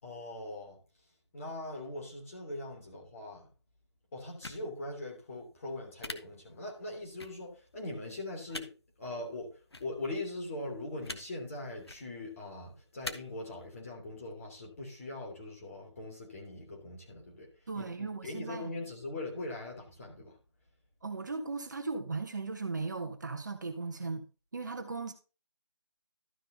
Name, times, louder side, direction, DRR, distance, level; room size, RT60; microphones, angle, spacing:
voice 1, 0.0-0.8 1.3-3.5 4.1-8.7 9.0-9.5 9.8-17.5 17.7-20.3, left 2 dB, 30° left, 3.1 m, -41 dB
sound 1, 4.4-4.6 6.0-6.1 7.2-7.3 8.5-8.7 9.7-9.8 11.0-11.2 11.8-12.0 13.0-13.1, left 2 dB, 65° left, 1.0 m, -40 dB
voice 2, 17.7-18.7 21.0-24.2 24.5-25.1, right 4 dB, 40° right, 1.1 m, -37 dB
12.5 x 5.7 x 4.0 m
figure-of-eight pair, 155°, 14 cm